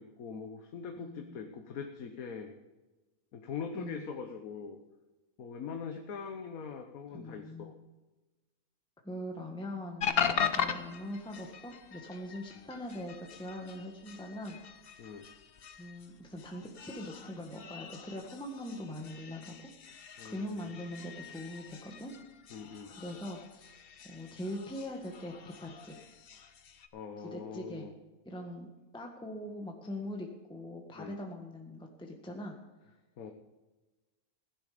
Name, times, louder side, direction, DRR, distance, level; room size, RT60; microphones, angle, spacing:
voice 1, 0.0-2.5 3.3-4.8 5.4-7.7 15.0-15.2 20.2-20.5 22.5-22.9 26.9-27.9 30.9-31.2 33.2-33.3, left 6 dB, 65° left, 5 dB, 1.4 m, -42 dB
voice 2, 1.0-1.4 3.7-4.0 7.1-7.7 9.0-14.6 15.8-22.1 22.9-23.8 24.0-25.9 27.2-27.9 28.2-28.7 28.9-32.5, left 1 dB, 5° left, 1 dB, 1.5 m, -42 dB
sound 1, 10.0-26.9, left 7 dB, 45° left, 0.9 m, -40 dB
16.5 x 10.5 x 5.1 m, 1.2 s
omnidirectional pair, 1.7 m